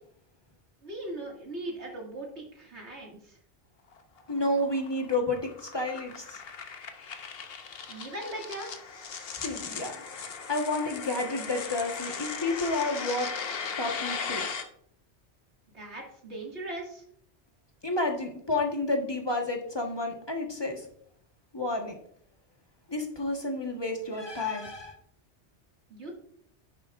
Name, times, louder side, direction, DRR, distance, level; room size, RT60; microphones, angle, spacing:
voice 1, 0.8-3.4 7.9-8.7 15.7-17.0 25.9-26.1, right 1 dB, 75° right, -1 dB, 2.5 m, -39 dB
sound 1, 3.9-14.6, left 5 dB, 60° left, 1.0 m, -38 dB
voice 2, 4.3-6.4 9.4-13.3 13.8-14.4 17.8-20.9 21.5-22.0 22.9-24.9, left 2 dB, 20° left, 2 dB, 1.3 m, -30 dB
10.5 x 8.4 x 2.5 m, 0.66 s
omnidirectional pair, 1.2 m